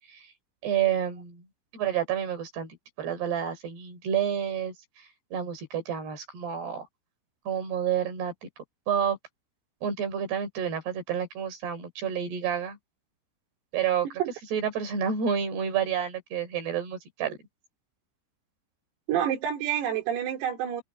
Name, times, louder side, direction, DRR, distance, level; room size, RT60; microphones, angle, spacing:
voice 1, 0.6-1.5 1.7-4.7 5.3-6.9 7.5-8.3 8.9-9.2 9.8-12.8 13.7-14.1 14.5-17.4, right 8 dB, 55° right, 6.3 m, -29 dB
voice 2, 19.1-20.8, right 9 dB, 85° right, 6.7 m, -28 dB
omnidirectional pair, 5.9 m